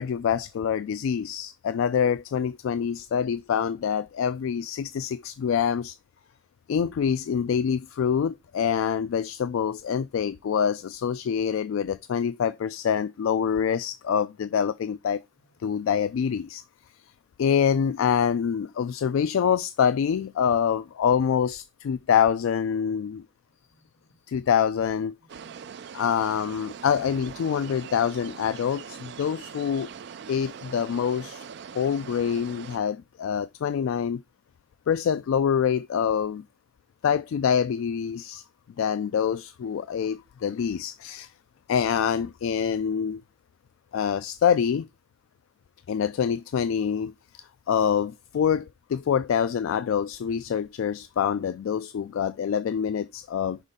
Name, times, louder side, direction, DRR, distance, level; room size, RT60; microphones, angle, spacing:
voice 1, 0.0-6.0 6.7-15.2 15.6-16.6 17.4-23.2 24.3-25.1 25.9-29.9 30.3-31.4 31.7-34.2 34.9-36.4 37.0-38.4 38.8-41.3 41.7-43.2 43.9-44.9 45.9-53.6, left 7 dB, 80° left, 0.3 m, -25 dB
voice 2, 23.5-24.5 25.2-26.0, equal, 60° left, 1.5 m, -63 dB
sound 1, 25.3-32.8, right 7 dB, 55° right, 0.3 m, -42 dB
5.3 x 4.9 x 4.1 m
head